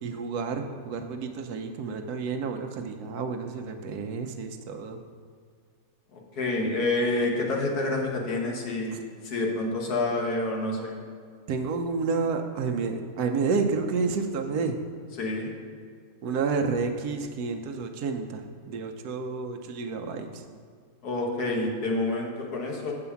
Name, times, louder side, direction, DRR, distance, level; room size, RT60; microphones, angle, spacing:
voice 1, 0.0-5.0 8.9-9.0 11.5-14.8 16.2-20.4, right 4 dB, 80° right, 5 dB, 1.2 m, -30 dB
voice 2, 6.1-11.0 15.2-15.5 21.0-22.9, left 2 dB, 85° left, 0 dB, 1.8 m, -28 dB
7.8 x 4.8 x 7.0 m, 2.1 s
omnidirectional pair, 1.6 m